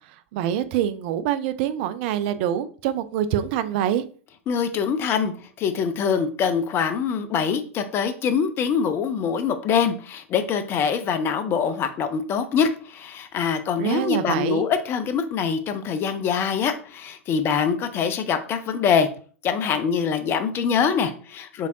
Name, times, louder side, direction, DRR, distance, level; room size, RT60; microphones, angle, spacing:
voice 1, 0.1-4.0 13.8-14.7, right 10 dB, 50° right, 12 dB, 0.4 m, -25 dB
voice 2, 4.5-19.1 19.4-21.7, left 6 dB, 35° left, 9 dB, 0.6 m, -24 dB
4.6 x 3.4 x 2.6 m, 0.42 s
figure-of-eight pair, 90°, 7 cm